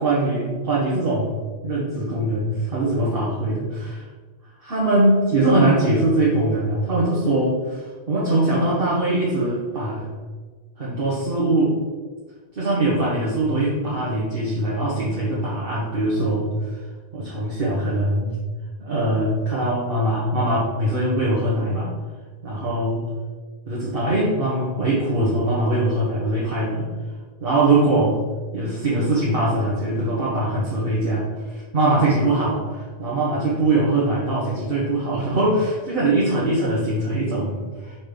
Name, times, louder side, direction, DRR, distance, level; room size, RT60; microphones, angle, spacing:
voice 1, 0.0-4.0 4.6-10.1 10.8-11.8 12.6-16.8 17.1-18.4 18.8-21.9 22.4-23.0 23.7-26.9 27.4-28.2 28.5-38.0, right 2 dB, 55° right, -7 dB, 1.6 m, -22 dB
5.8 x 4.1 x 5.2 m, 1.4 s
omnidirectional pair, 1.1 m